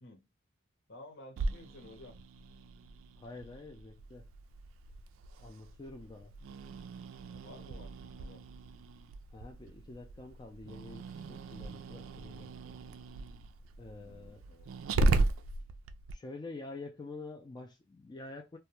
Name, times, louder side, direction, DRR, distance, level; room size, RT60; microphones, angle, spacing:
voice 1, 0.9-2.2 7.3-8.4 14.0-14.7, left 1 dB, 65° left, 0.8 m, -53 dB
Growling, 1.4-16.1, right 2 dB, 85° right, 0.3 m, -37 dB
voice 2, 3.2-4.3 5.4-6.3 9.3-12.8 13.8-14.4 16.1-18.6, left 3 dB, 20° left, 0.3 m, -47 dB
2.2 x 2.1 x 2.8 m
head